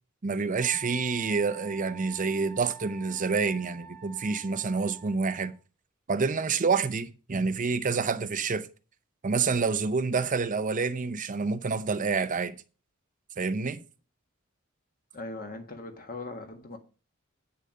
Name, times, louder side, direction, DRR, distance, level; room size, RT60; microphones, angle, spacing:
voice 1, 0.2-5.5 6.1-8.7 9.2-12.6 13.4-13.8, right 4 dB, 35° right, 0.6 m, -28 dB
Wind instrument woodwind instrument, 0.6-5.6, right 7 dB, 5° left, 1.2 m, -48 dB
voice 2, 15.1-16.8, left 2 dB, 40° left, 1.5 m, -39 dB
8.9 x 6.5 x 5.2 m
head